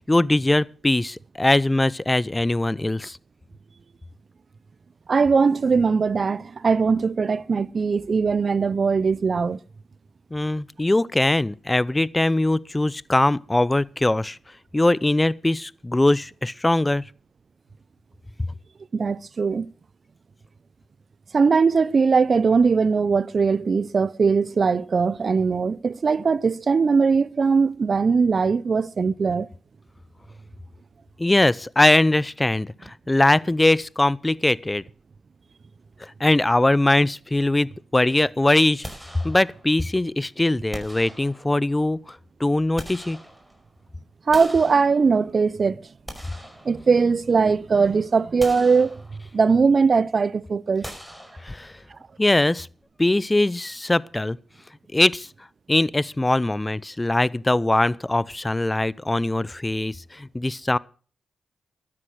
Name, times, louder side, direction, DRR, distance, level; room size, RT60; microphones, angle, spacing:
voice 1, 0.1-3.2 10.3-14.4 14.7-17.0 31.2-34.8 36.2-38.8 39.2-43.2 51.4-51.7 52.2-52.7 53.0-54.4 54.9-55.3 55.7-60.8, left 2 dB, 20° left, 0.6 m, -21 dB
voice 2, 5.1-9.6 18.9-19.7 21.3-29.5 44.3-45.8 46.6-49.0 49.3-50.9, right 5 dB, 55° right, 0.7 m, -20 dB
sound 1, 38.8-39.9 40.7-41.8 42.4-43.8 44.3-45.4 45.9-47.3 47.7-47.9 48.4-49.5 50.8-52.0, equal, 5° right, 5.1 m, -41 dB
13.0 x 9.6 x 6.4 m
supercardioid pair, 45°, 0 cm